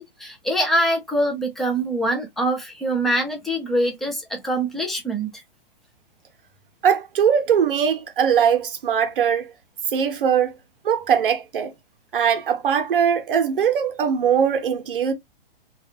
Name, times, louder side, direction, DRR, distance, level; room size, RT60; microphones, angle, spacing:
voice 1, 0.0-5.4, right 1 dB, ahead, 0.5 m, -24 dB
voice 2, 6.8-9.5 9.9-10.5 10.8-11.7 12.1-15.1, right 7 dB, 65° right, 0.8 m, -20 dB
2.3 x 2.3 x 2.7 m
hypercardioid pair, 125°, 29 cm